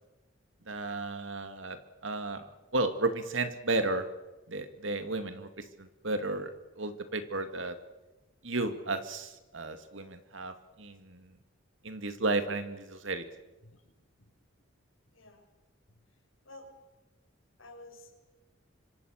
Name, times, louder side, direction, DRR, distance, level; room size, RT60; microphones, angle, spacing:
voice 1, 0.7-4.1 4.5-7.8 8.4-11.3 11.8-13.2, right 2 dB, 70° right, 8 dB, 2.5 m, -33 dB
voice 2, 15.1-15.5 15.9-16.0 16.4-16.7 17.6-18.2, left 1 dB, 80° left, 3 dB, 6.4 m, -52 dB
25.5 x 25.5 x 6.7 m, 1.1 s
head